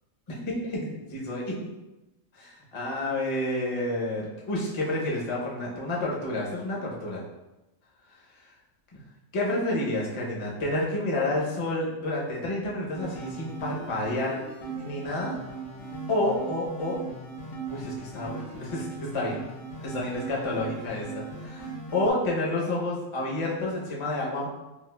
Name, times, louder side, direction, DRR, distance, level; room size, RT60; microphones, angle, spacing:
voice 1, 0.6-1.6 2.3-7.2 9.3-14.4 14.8-15.4 16.1-17.0 17.7-19.4 19.8-24.5, left 1 dB, 40° left, -3 dB, 0.4 m, -29 dB
sound 1, 12.9-22.1, right 4 dB, 80° left, 1.1 m, -38 dB
4.0 x 2.3 x 2.2 m, 0.99 s
omnidirectional pair, 1.4 m